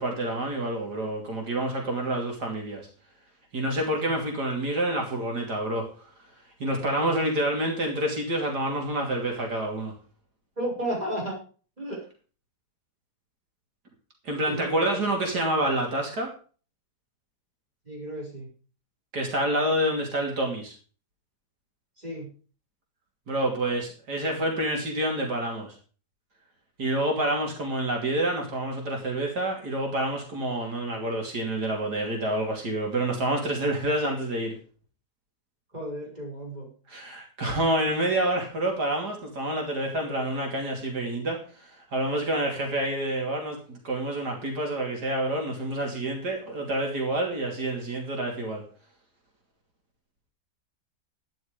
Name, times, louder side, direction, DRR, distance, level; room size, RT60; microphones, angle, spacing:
voice 1, 0.0-2.9 3.5-5.8 6.6-9.9 14.2-16.3 19.1-20.7 23.3-25.7 26.8-34.5 36.9-48.6, right 1 dB, 85° right, 1 dB, 3.3 m, -28 dB
voice 2, 6.8-7.2 10.6-11.4 11.8-12.0 14.5-15.0 17.8-18.5 22.0-22.3 35.7-36.7 42.7-42.8, right 1 dB, 25° right, -3 dB, 6.2 m, -34 dB
11.5 x 10.0 x 5.2 m, 0.39 s
omnidirectional pair, 1.7 m